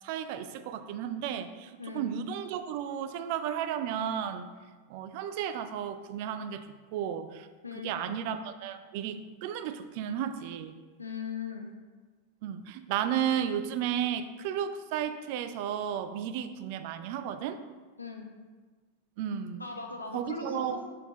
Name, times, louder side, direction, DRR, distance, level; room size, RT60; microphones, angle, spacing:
voice 1, 0.0-4.5 4.9-6.7 6.9-7.5 7.8-10.7 12.4-17.6 19.2-19.6 20.1-20.8, right 9 dB, 45° right, 10 dB, 0.5 m, -33 dB
voice 2, 7.6-8.2 11.0-11.7 18.0-18.3 19.6-20.9, left 5 dB, 80° left, 2 dB, 1.0 m, -39 dB
7.0 x 5.8 x 3.9 m, 1.4 s
figure-of-eight pair, 90°, 0 cm